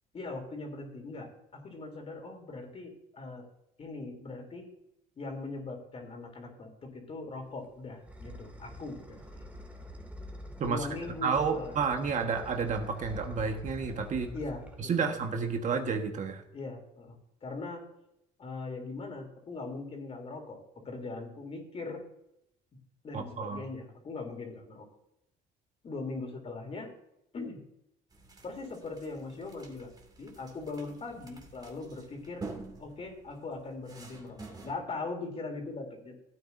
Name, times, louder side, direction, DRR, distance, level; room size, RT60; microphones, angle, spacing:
voice 1, 0.1-3.4 3.8-4.7 5.2-9.4 10.6-11.7 14.3-15.1 16.5-17.8 18.4-22.0 23.0-24.9 25.8-26.9 27.3-27.6 28.4-29.9 30.2-32.4 32.8-36.1, left 3 dB, 35° left, 2 dB, 3.4 m, -40 dB
sound 1, 7.5-15.4, equal, 10° right, 2.2 m, -46 dB
voice 2, 11.2-14.3 14.8-16.4 23.1-23.6, right 5 dB, 45° right, 4 dB, 1.5 m, -30 dB
sound 2, 28.1-34.7, right 3 dB, 25° right, 2.6 m, -48 dB
16.0 x 9.0 x 2.7 m, 0.82 s
cardioid pair, 110°, 17 cm